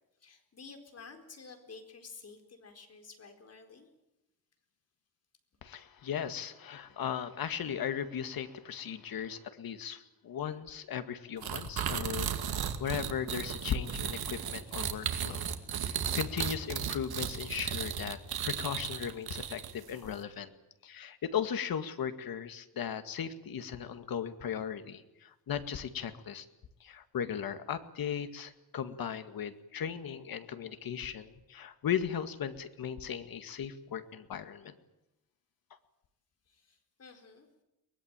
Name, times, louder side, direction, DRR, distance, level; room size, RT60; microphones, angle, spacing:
voice 1, 0.2-3.9 36.5-37.5, left 4 dB, 45° left, 6 dB, 4.4 m, -51 dB
voice 2, 5.6-15.4 15.8-18.2 18.4-20.5 20.8-26.5 26.8-34.8, left 8 dB, 75° left, 10 dB, 2.1 m, -37 dB
sound 1, 11.4-19.9, right 8 dB, 85° right, 2.4 m, -35 dB
23.0 x 21.0 x 9.1 m, 0.92 s
wide cardioid pair, 145°, 36 cm